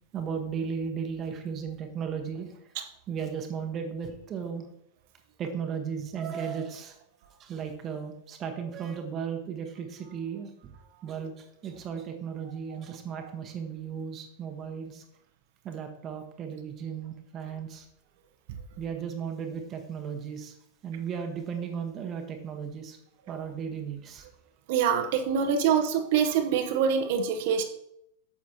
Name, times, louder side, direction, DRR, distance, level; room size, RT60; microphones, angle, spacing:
voice 1, 0.1-2.5 3.1-4.6 5.4-6.9 7.4-10.7 11.0-11.3 11.6-15.0 15.6-17.8 18.8-20.5 20.8-23.0 23.3-24.2, right 7 dB, 30° right, 5 dB, 1.1 m, -35 dB
voice 2, 24.7-27.6, right 7 dB, 50° right, 5 dB, 0.9 m, -25 dB
9.4 x 7.2 x 2.8 m, 0.76 s
figure-of-eight pair, 90°, 0 cm